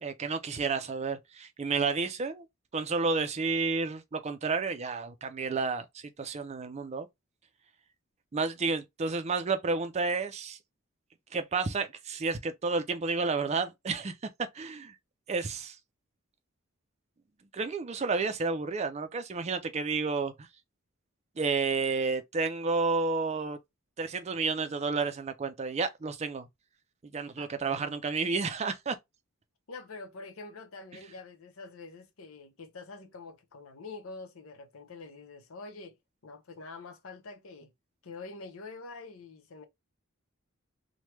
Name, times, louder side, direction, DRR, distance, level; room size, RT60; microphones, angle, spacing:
voice 1, 0.0-2.5 2.7-7.1 8.3-10.6 11.3-14.1 14.5-14.9 15.3-15.8 17.5-20.5 21.4-23.6 24.0-26.5 27.1-29.0, right 4 dB, 30° right, 0.4 m, -31 dB
voice 2, 27.4-27.8 29.7-36.0 36.2-37.7 38.0-39.7, left 3 dB, 75° left, 0.7 m, -46 dB
3.0 x 2.2 x 3.3 m
head